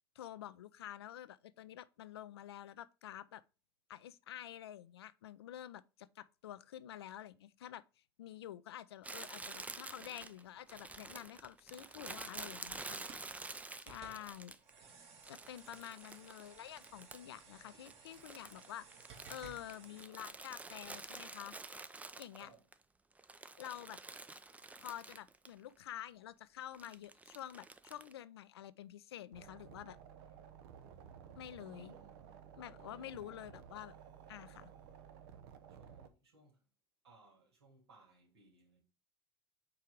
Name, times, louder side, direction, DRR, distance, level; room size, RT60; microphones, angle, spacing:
voice 1, 0.2-3.4 3.9-7.8 8.2-13.0 13.8-14.5 15.3-21.5 22.2-22.5 23.6-24.0 24.8-30.0 31.4-31.9 32.6-33.9 34.3-34.7, left 12 dB, 80° left, 0.5 m, -49 dB
Crumpling crinkling, 9.0-14.8 15.2-17.4 17.7-22.7 23.1-25.5 25.8-25.9 26.7-28.1, right 3 dB, 10° right, 0.5 m, -49 dB
sound 1, 10.5-20.1, right 5 dB, 50° right, 2.2 m, -59 dB
voice 2, 13.9-14.3 15.7-16.0 22.4-22.7 31.7-32.1 32.7-33.6 35.7-36.6 37.0-38.8, right 3 dB, 85° right, 3.1 m, -64 dB
sound 2, 29.3-36.1, right 8 dB, 70° right, 0.9 m, -55 dB
4.7 x 4.6 x 5.1 m
hypercardioid pair, 80°, 13 cm